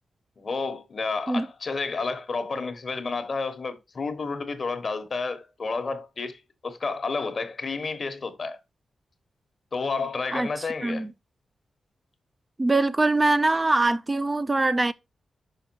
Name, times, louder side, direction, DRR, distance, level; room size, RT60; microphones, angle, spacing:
voice 1, 0.4-8.6 9.7-11.1, left 4 dB, 55° left, 1.1 m, -31 dB
voice 2, 10.3-11.1 12.6-14.9, right 2 dB, 25° right, 0.4 m, -23 dB
5.7 x 5.1 x 4.5 m
cardioid pair, 60°, 0 cm